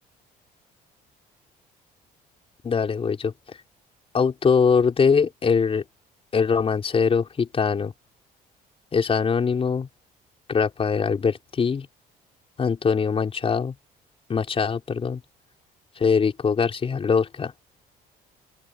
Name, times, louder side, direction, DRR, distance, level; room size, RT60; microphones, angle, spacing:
voice 1, 2.6-3.3 4.1-5.8 6.3-7.9 8.9-9.9 10.5-11.9 12.6-13.7 14.3-15.2 16.0-17.5, left 5 dB, 35° left, 4.4 m, -22 dB
open air
cardioid pair, 110°, 17 cm